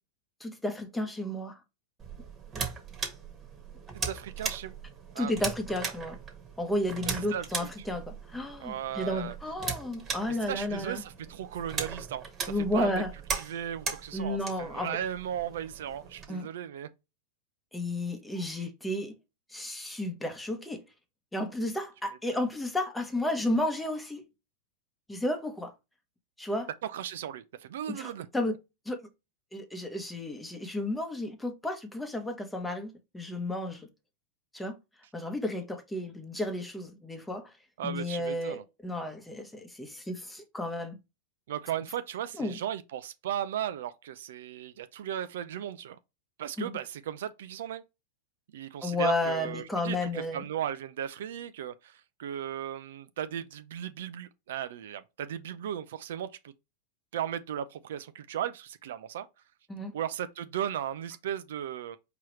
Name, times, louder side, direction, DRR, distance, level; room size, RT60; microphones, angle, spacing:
voice 1, 0.4-1.6 2.5-2.6 5.2-6.2 6.6-11.0 12.5-13.1 14.1-15.0 16.3-16.5 17.7-19.1 19.5-20.8 21.3-24.2 25.1-25.7 26.4-26.7 27.9-28.5 28.9-29.0 29.5-33.9 34.5-34.8 35.1-37.5 37.8-41.0 42.4-42.6 46.6-46.8 48.8-50.4 59.7-59.9, left 1 dB, 5° left, 1.0 m, -32 dB
sound 1, 2.0-16.3, right 5 dB, 25° right, 1.4 m, -39 dB
voice 2, 4.0-4.7 5.1-5.5 7.1-7.7 8.6-9.3 10.3-13.0 13.3-16.9 22.3-22.4 26.8-28.3 37.8-38.6 41.5-46.0 46.4-47.8 48.5-56.5 57.1-59.3 59.9-62.0, right 10 dB, 70° right, 0.5 m, -36 dB
4.7 x 3.0 x 3.1 m
hypercardioid pair, 110°, 0 cm